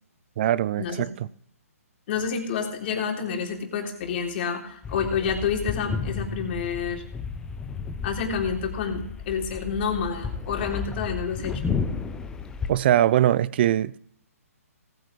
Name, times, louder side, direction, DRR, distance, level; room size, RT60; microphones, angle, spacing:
voice 1, 0.4-1.1 12.7-14.0, right 12 dB, 40° right, 0.5 m, -21 dB
voice 2, 2.1-7.0 8.0-11.8, left 6 dB, 40° left, 3.4 m, -29 dB
sound 1, 4.8-12.7, left 5 dB, 10° left, 0.7 m, -32 dB
18.5 x 9.0 x 3.3 m
hypercardioid pair, 145°, 8 cm